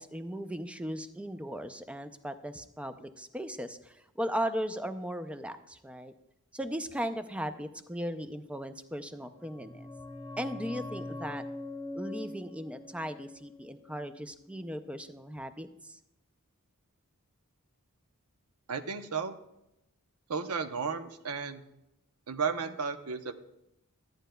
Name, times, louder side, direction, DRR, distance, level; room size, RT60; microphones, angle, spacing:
voice 1, 0.0-6.1 6.5-9.9 10.4-11.4 11.9-16.0, equal, 5° right, 9 dB, 0.4 m, -37 dB
sound 1, 9.2-14.6 14.8-14.9, left 2 dB, 20° left, 0.9 m, -43 dB
voice 2, 18.7-19.4 20.3-21.6 22.3-23.4, right 5 dB, 80° right, 8 dB, 0.7 m, -33 dB
13.5 x 9.1 x 2.2 m, 0.86 s
head